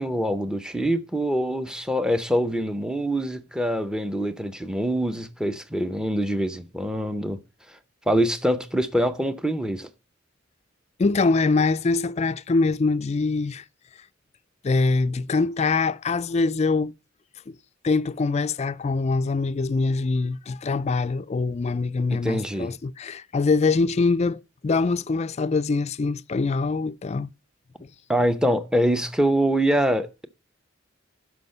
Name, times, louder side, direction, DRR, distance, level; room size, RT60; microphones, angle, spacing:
voice 1, 0.0-7.4 8.1-9.9 22.1-22.7 28.1-30.3, equal, 5° right, 0.7 m, -24 dB
voice 2, 11.0-13.6 14.6-16.9 17.5-17.6 17.8-27.3 27.8-27.9, left 3 dB, 35° left, 0.4 m, -23 dB
12.0 x 5.1 x 5.3 m
head